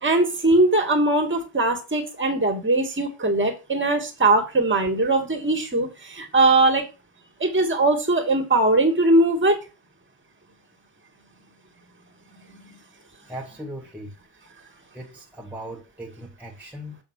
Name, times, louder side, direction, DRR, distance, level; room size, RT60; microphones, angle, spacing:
voice 1, 0.0-6.8 7.4-9.6 12.5-12.8, right 2 dB, 25° right, 2.7 m, -20 dB
voice 2, 13.3-14.1 14.9-17.0, right 1 dB, 5° right, 2.0 m, -38 dB
8.0 x 3.8 x 5.7 m
supercardioid pair, 75°, 46 cm